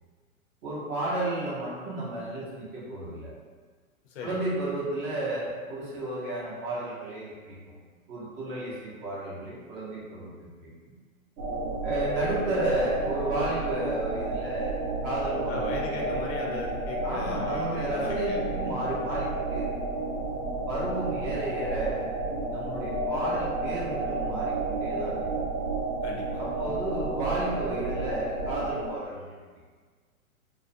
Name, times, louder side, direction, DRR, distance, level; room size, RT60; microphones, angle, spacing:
voice 1, 0.6-3.3 4.2-7.8 8.1-10.3 10.6-10.7 11.8-16.2 17.0-19.7 20.7-22.1 22.5-25.3 26.4-29.4, right 2 dB, 25° right, -7 dB, 0.7 m, -32 dB
voice 2, 4.0-4.4 15.4-18.4 26.0-26.8, left 4 dB, 50° left, -1 dB, 0.5 m, -38 dB
sound 1, 11.4-28.9, right 2 dB, 75° right, 0.7 m, -31 dB
2.4 x 2.1 x 2.5 m, 1.5 s
hypercardioid pair, 130°, 42 cm